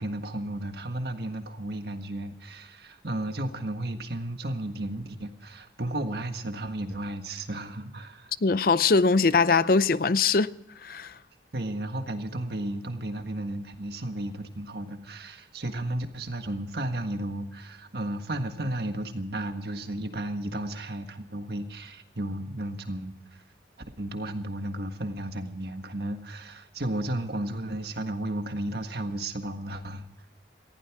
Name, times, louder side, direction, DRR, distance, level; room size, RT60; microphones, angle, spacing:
voice 1, 0.0-8.3 11.5-23.1 24.0-30.0, right 1 dB, 60° right, 1.6 m, -33 dB
voice 2, 8.4-10.5 10.8-11.1, left 4 dB, 50° left, 0.5 m, -21 dB
19.0 x 15.5 x 4.8 m
head